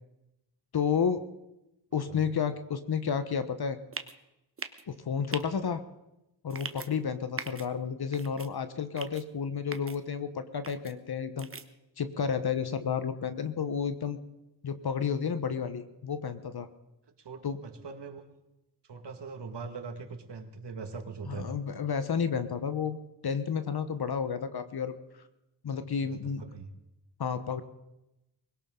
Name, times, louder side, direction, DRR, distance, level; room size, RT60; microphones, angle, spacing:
voice 1, 0.7-1.3 1.9-3.8 4.9-5.8 6.4-11.5 12.0-14.2 14.6-16.7 17.4-17.6 21.3-23.0 23.2-24.9 25.6-26.4 27.2-27.6, left 6 dB, 60° left, 11 dB, 1.1 m, -31 dB
sound 1, 3.9-4.1 4.6-4.8 5.3-5.4 6.5-6.9 7.4-7.7 8.1-8.5 9.0-9.2 9.7-10.0 10.6-10.9 11.4-11.6, right 4 dB, 30° right, 1.1 m, -39 dB
voice 2, 17.2-18.2 18.8-21.6 26.0-26.7, right 4 dB, 65° right, 6 dB, 2.0 m, -41 dB
21.0 x 17.5 x 3.8 m, 0.92 s
cardioid pair, 75°, 44 cm